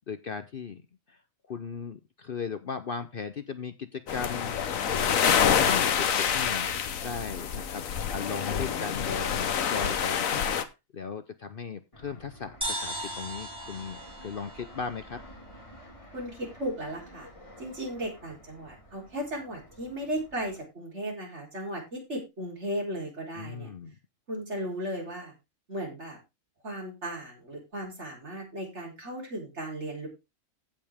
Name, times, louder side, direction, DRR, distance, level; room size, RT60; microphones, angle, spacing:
voice 1, 0.1-0.8 1.1-1.2 1.5-4.7 5.0-6.7 7.0-7.8 8.1-10.3 10.9-15.2 23.4-23.9, left 5 dB, 50° left, 10 dB, 0.8 m, -37 dB
sound 1, 4.1-10.6, left 8 dB, 80° left, 1.3 m, -27 dB
Fixed-wing aircraft airplane, 11.9-20.6, equal, 25° left, 2.2 m, -51 dB
sound 2, 12.6-16.1, right 1 dB, 5° right, 3.1 m, -38 dB
voice 2, 16.1-17.3 17.6-23.7 24.3-25.3 25.7-26.2 26.6-30.1, right 1 dB, 55° right, -1 dB, 4.2 m, -36 dB
16.0 x 5.3 x 3.6 m, 0.25 s
omnidirectional pair, 1.4 m